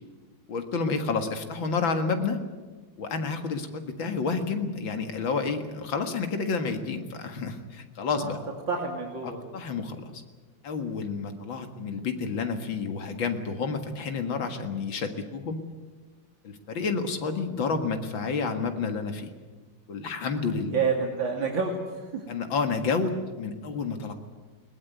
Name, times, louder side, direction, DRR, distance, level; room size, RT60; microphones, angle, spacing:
voice 1, 0.5-2.4 3.0-8.4 9.2-10.2 10.6-15.7 16.4-19.3 19.9-20.8 22.3-24.1, left 4 dB, 80° left, 7 dB, 2.6 m, -30 dB
voice 2, 8.7-9.4 20.6-22.2, right 5 dB, 75° right, 0 dB, 3.2 m, -29 dB
21.0 x 20.0 x 9.5 m, 1.3 s
omnidirectional pair, 2.1 m